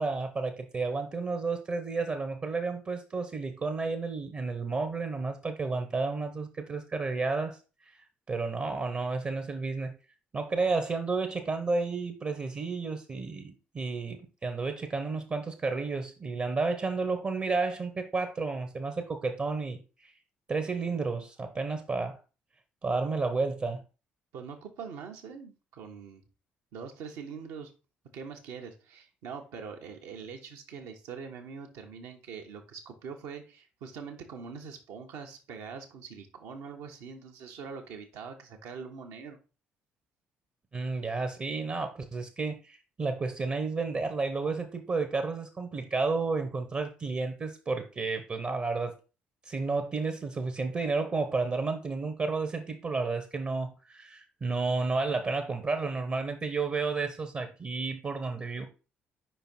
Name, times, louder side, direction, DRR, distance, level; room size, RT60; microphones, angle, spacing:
voice 1, 0.0-7.6 8.3-9.9 10.3-20.1 20.5-22.2 22.8-23.8 40.7-48.9 49.4-58.7, right 3 dB, 35° right, 1.0 m, -31 dB
voice 2, 24.3-26.2 26.7-27.7 28.1-39.4, right 6 dB, 65° right, 1.2 m, -43 dB
5.2 x 4.5 x 4.4 m
figure-of-eight pair, 45°, 6 cm